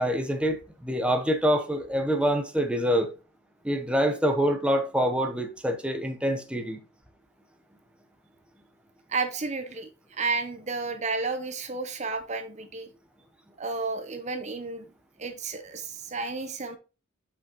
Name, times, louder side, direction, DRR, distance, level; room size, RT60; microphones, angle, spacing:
voice 1, 0.0-3.1 3.6-6.8, equal, 5° right, 0.9 m, -26 dB
voice 2, 9.1-12.9 13.6-14.9 15.2-16.8, right 4 dB, 35° right, 0.8 m, -32 dB
7.4 x 5.7 x 3.0 m
head